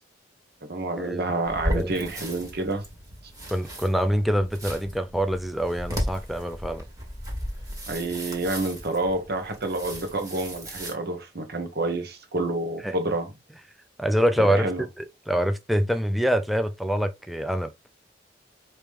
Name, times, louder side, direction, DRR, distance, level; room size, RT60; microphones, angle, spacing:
voice 1, 0.7-2.8 7.9-13.3 14.4-14.8, right 2 dB, 60° right, 1.1 m, -28 dB
sound 1, 1.4-10.9, equal, 20° right, 1.7 m, -35 dB
voice 2, 3.5-6.8 12.8-12.9 14.0-14.7 15.0-17.7, equal, ahead, 0.4 m, -25 dB
4.9 x 3.0 x 3.5 m
head